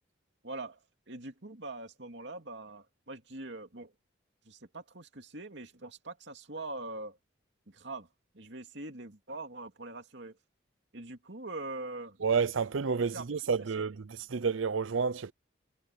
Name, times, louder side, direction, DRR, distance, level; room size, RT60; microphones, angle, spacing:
voice 1, 0.4-3.9 4.4-7.2 7.7-8.1 8.3-10.4 10.9-12.2 13.0-13.3 13.8-13.9, right 2 dB, 60° right, 2.7 m, -43 dB
voice 2, 12.2-15.3, right 5 dB, 80° right, 0.6 m, -30 dB
head